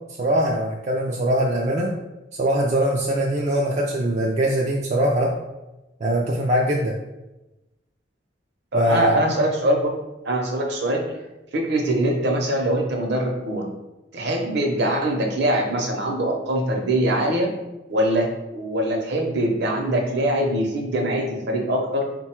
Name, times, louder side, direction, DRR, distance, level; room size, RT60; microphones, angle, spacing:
voice 1, 0.2-1.9 2.3-5.3 6.0-7.0 8.7-9.2, right 1 dB, 40° right, -2 dB, 0.4 m, -22 dB
voice 2, 8.7-9.9 10.2-11.0 11.5-13.7 14.1-17.5 17.9-22.1, right 1 dB, 60° right, 1 dB, 0.7 m, -23 dB
3.9 x 2.3 x 4.4 m, 1.0 s
head